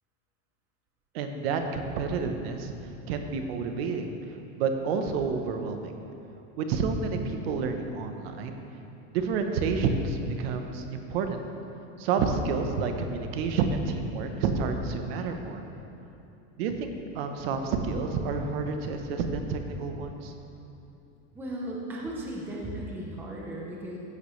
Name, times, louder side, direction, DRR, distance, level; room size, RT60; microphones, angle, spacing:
voice 1, 1.1-2.7 3.1-4.1 4.6-5.9 6.6-8.6 9.1-11.4 12.0-15.6 16.6-20.3, right 5 dB, 55° right, 5 dB, 1.0 m, -29 dB
voice 2, 21.3-24.0, right 1 dB, 5° right, -4 dB, 0.7 m, -36 dB
15.0 x 10.5 x 3.2 m, 2.8 s
supercardioid pair, 180°, 37 cm